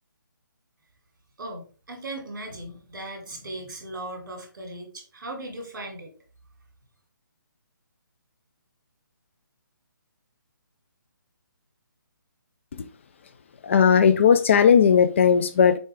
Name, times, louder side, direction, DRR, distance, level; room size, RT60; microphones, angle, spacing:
voice 1, 1.4-6.1, right 1 dB, 60° right, 3 dB, 3.0 m, -38 dB
voice 2, 13.6-15.8, left 7 dB, 35° left, 10 dB, 0.6 m, -17 dB
6.8 x 3.9 x 3.5 m, 0.35 s
hypercardioid pair, 165°, 11 cm